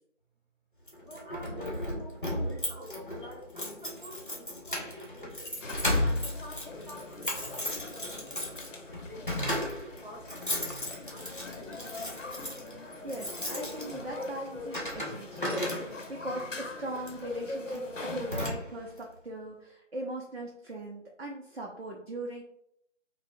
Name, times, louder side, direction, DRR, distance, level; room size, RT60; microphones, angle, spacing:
Keys jangling, 0.9-16.2 17.0-17.3 17.7-17.8 18.1-19.0, left 1 dB, 40° left, 0.7 m, -35 dB
voice 1, 1.0-5.5 6.0-11.9, equal, 35° right, -6 dB, 0.9 m, -49 dB
sound 1, 5.6-18.5, left 2 dB, 80° left, 0.7 m, -42 dB
voice 2, 12.6-22.4, right 1 dB, 55° right, -1 dB, 0.5 m, -40 dB
4.0 x 2.0 x 2.6 m, 0.73 s
figure-of-eight pair, 175°, 38 cm